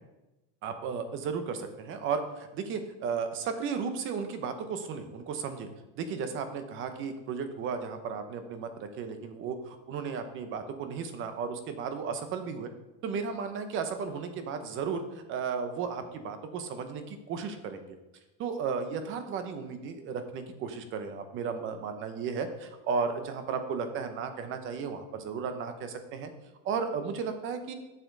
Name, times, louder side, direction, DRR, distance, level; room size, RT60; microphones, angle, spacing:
voice 1, 0.6-5.7 6.0-12.7 13.0-18.0 18.4-26.3 26.6-27.7, right 5 dB, 35° right, 8 dB, 0.8 m, -34 dB
7.9 x 6.9 x 3.9 m, 1.0 s
cardioid pair, 165°, 37 cm